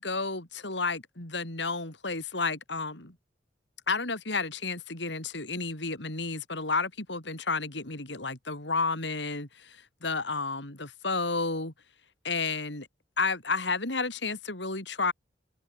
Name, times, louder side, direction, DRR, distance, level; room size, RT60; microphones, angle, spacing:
voice 1, 0.0-3.1 3.9-11.7 12.2-12.9 13.2-15.1, left 4 dB, 70° left, 4.5 m, -31 dB
head